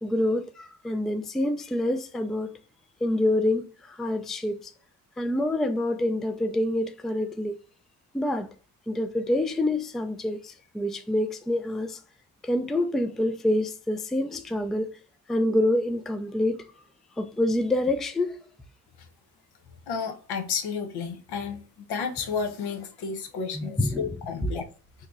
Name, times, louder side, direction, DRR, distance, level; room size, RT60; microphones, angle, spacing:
voice 1, 0.0-2.5 3.0-4.7 5.2-7.6 8.1-8.5 8.9-12.0 12.4-14.9 15.3-16.6 17.2-18.4 23.5-24.1 24.4-24.6, left 1 dB, ahead, 0.3 m, -27 dB
voice 2, 19.9-21.6 21.9-24.6, left 6 dB, 75° left, 0.9 m, -31 dB
2.9 x 2.7 x 3.5 m
cardioid pair, 80°, 39 cm